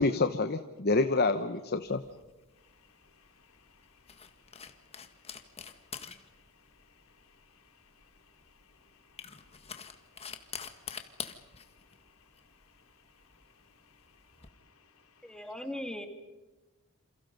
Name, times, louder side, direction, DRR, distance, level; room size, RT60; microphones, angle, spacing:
voice 1, 0.0-2.0, left 3 dB, 45° left, 9 dB, 1.0 m, -27 dB
sound 1, 1.9-14.5, left 7 dB, 30° left, 1.7 m, -47 dB
voice 2, 2.6-15.4, left 5 dB, 70° left, 6 dB, 3.4 m, -65 dB
voice 3, 15.2-16.1, left 1 dB, 5° left, 5 dB, 2.5 m, -38 dB
29.0 x 28.0 x 5.3 m, 1.1 s
head